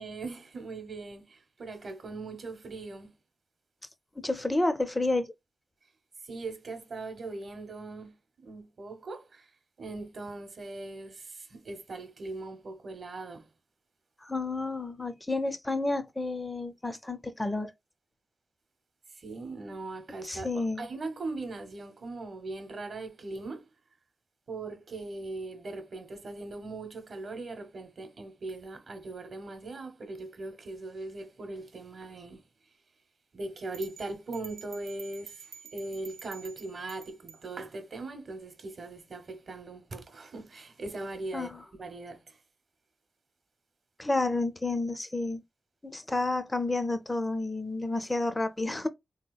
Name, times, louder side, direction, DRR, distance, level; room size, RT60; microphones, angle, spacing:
voice 1, 0.0-3.1 6.2-9.5 9.8-13.5 19.1-23.7 24.5-32.4 33.3-41.5 41.8-42.4, right 2 dB, 55° right, 0.8 m, -40 dB
voice 2, 4.2-5.3 14.2-17.7 20.2-20.9 41.3-41.6 44.0-45.4 45.8-48.9, left 2 dB, 15° left, 0.4 m, -30 dB
sound 1, 33.7-37.4, right 7 dB, 90° right, 0.3 m, -49 dB
3.5 x 2.8 x 2.2 m
wide cardioid pair, 145°, 0 cm